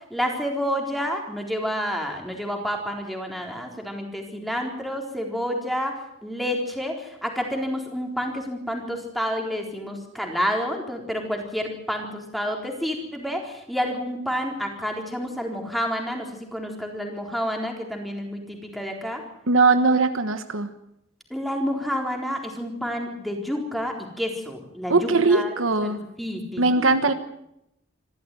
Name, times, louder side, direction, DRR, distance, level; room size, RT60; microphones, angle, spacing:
voice 1, 0.1-19.2 21.3-25.5 25.8-26.9, equal, ahead, 2 dB, 4.0 m, -29 dB
voice 2, 19.5-20.7 24.9-26.0 26.6-27.1, right 3 dB, 85° right, 9 dB, 1.2 m, -20 dB
26.0 x 13.5 x 9.3 m, 0.83 s
head